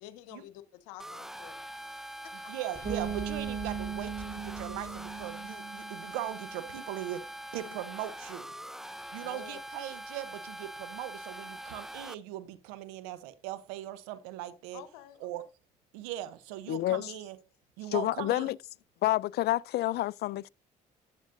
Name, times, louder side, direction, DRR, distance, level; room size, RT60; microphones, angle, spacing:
voice 1, 0.0-2.5 7.6-7.8 9.2-9.6 14.7-15.3, left 14 dB, 85° left, 0.9 m, -50 dB
sound 1, 1.0-12.1, right 1 dB, ahead, 0.5 m, -43 dB
voice 2, 2.3-8.5 9.1-14.8 15.2-15.4 15.9-17.4 17.8-18.5, right 13 dB, 85° right, 0.9 m, -40 dB
sound 2, 2.7-6.5, left 2 dB, 15° left, 1.1 m, -46 dB
Bass guitar, 2.8-6.6, right 8 dB, 45° right, 0.9 m, -38 dB
voice 3, 16.7-17.1 17.9-18.6 19.0-20.5, left 15 dB, 65° left, 0.4 m, -29 dB
11.5 x 8.3 x 2.6 m
hypercardioid pair, 55°, 19 cm